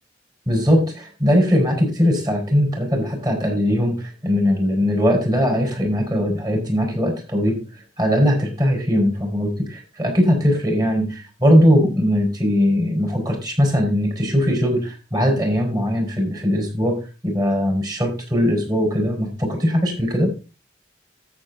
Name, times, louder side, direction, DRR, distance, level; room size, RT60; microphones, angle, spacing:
voice 1, 0.5-7.6 8.0-17.0 17.2-20.3, equal, 20° right, 2 dB, 5.7 m, -20 dB
13.0 x 7.3 x 4.0 m, 0.31 s
head